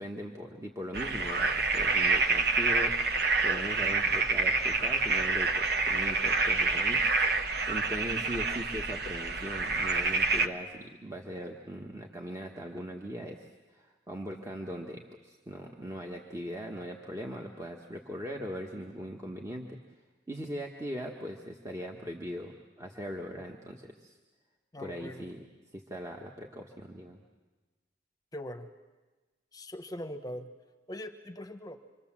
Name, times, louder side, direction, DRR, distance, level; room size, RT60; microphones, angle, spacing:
voice 1, 0.0-3.1 3.4-7.2 7.7-19.8 20.3-24.2 24.8-25.4 25.7-27.2, equal, 15° right, 1 dB, 1.4 m, -40 dB
sound 1, 0.9-10.5, right 3 dB, 60° right, 1.2 m, -27 dB
voice 2, 24.7-25.2 28.3-28.7 29.5-30.5 30.9-31.8, left 1 dB, 20° left, 7 dB, 1.0 m, -41 dB
26.5 x 24.5 x 7.4 m, 1.2 s
head